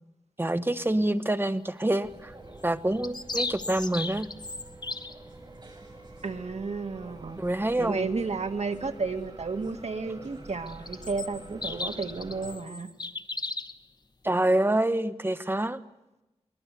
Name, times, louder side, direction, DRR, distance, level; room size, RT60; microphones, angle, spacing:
voice 1, 0.4-2.3 2.6-4.3 7.4-8.1 14.2-15.8, right 1 dB, 20° right, 11 dB, 1.2 m, -26 dB
sound 1, 2.0-12.6, right 2 dB, 40° right, 6.6 m, -47 dB
sound 2, 2.6-5.1 10.7-13.8, left 3 dB, 40° left, 1.1 m, -36 dB
voice 2, 6.2-7.4 7.8-12.9, right 4 dB, 75° right, 6 dB, 1.9 m, -32 dB
23.0 x 21.0 x 8.3 m, 0.98 s
wide cardioid pair, 90°, 11 cm